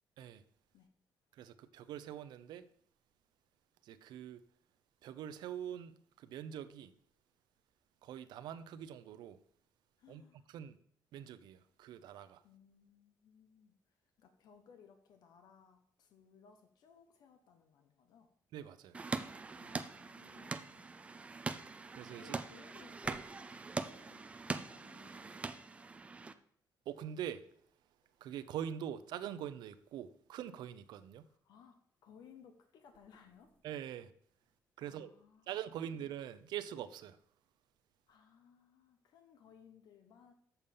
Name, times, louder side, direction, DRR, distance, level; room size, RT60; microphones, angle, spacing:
voice 1, 1.3-2.6 3.8-4.4 5.0-6.9 8.0-9.4 10.1-10.2 10.5-10.8 11.1-12.4 18.5-19.0 21.9-22.4 23.1-23.2 26.9-27.4 28.2-31.2 33.6-34.1 34.8-35.1 35.5-37.2, right 10 dB, 85° right, 0.5 m, -44 dB
voice 2, 10.0-10.5 12.4-18.3 19.6-20.9 22.2-23.0 23.8-26.0 31.3-33.5 34.8-35.9 38.1-40.3, left 7 dB, 70° left, 1.0 m, -62 dB
sound 1, 18.9-26.3, right 4 dB, 15° right, 0.4 m, -42 dB
sound 2, 22.9-23.3 27.4-30.9 31.9-35.2, equal, 15° left, 1.8 m, -68 dB
7.1 x 6.8 x 5.3 m
cardioid pair, 160°, 7 cm